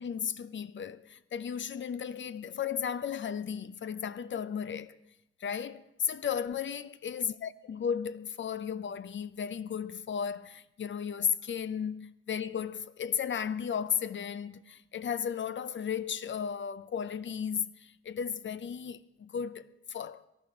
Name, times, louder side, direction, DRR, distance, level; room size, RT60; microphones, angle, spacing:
voice 1, 0.0-5.0 5.4-20.2, left 7 dB, 40° left, 0.7 m, -35 dB
18.5 x 13.0 x 3.9 m
cardioid pair, 90°, 30 cm